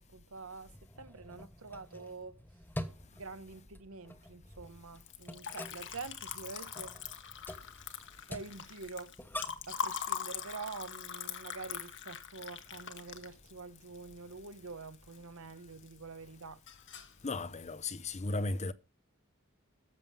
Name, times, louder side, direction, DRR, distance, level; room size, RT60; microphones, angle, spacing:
voice 1, 0.0-2.4 3.1-7.0 8.3-9.1 9.7-16.6, right 4 dB, 75° right, 1.1 m, -46 dB
sound 1, 0.6-9.8, left 1 dB, 10° left, 1.2 m, -47 dB
Liquid, 5.0-15.2 15.5-16.2 16.4-17.2, left 7 dB, 60° left, 1.5 m, -42 dB
voice 2, 17.2-18.7, left 2 dB, 30° left, 0.8 m, -35 dB
14.5 x 7.4 x 5.6 m
head